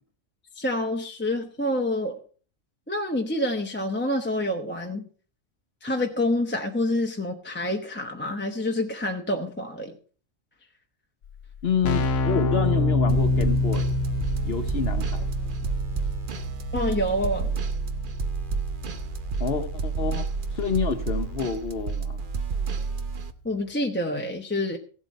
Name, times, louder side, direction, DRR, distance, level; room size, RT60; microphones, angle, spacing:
voice 1, 0.6-2.2 2.9-5.0 5.8-10.0 16.7-17.5 23.4-24.8, left 1 dB, 10° left, 0.9 m, -27 dB
Keyboard (musical), 11.2-11.3 11.5-22.2, left 2 dB, 75° left, 1.2 m, -28 dB
voice 2, 11.6-13.9 14.4-15.3 19.4-22.2, left 6 dB, 55° left, 1.1 m, -28 dB
sound 1, 13.1-23.3, right 5 dB, 45° right, 0.9 m, -30 dB
16.0 x 8.0 x 5.3 m
omnidirectional pair, 1.3 m